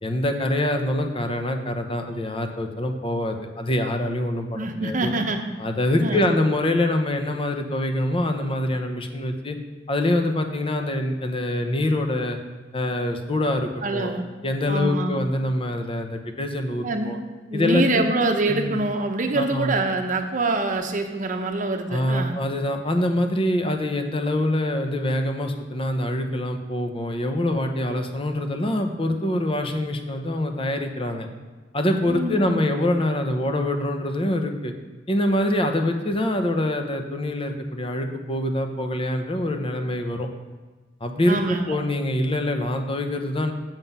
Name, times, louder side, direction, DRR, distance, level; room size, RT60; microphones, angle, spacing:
voice 1, 0.0-5.1 5.6-9.6 9.9-12.4 12.7-14.1 14.4-17.2 17.5-18.1 18.5-18.8 19.3-19.7 21.9-31.3 31.7-34.7 35.1-40.3 41.0-43.5, left 1 dB, 30° left, 5 dB, 0.9 m, -25 dB
voice 2, 4.5-5.4 6.0-6.3 13.8-14.3 14.7-15.2 16.8-17.2 17.5-22.4 32.0-32.6 41.3-41.6, right 2 dB, 45° right, 5 dB, 0.8 m, -25 dB
7.6 x 7.4 x 5.5 m, 1.3 s
head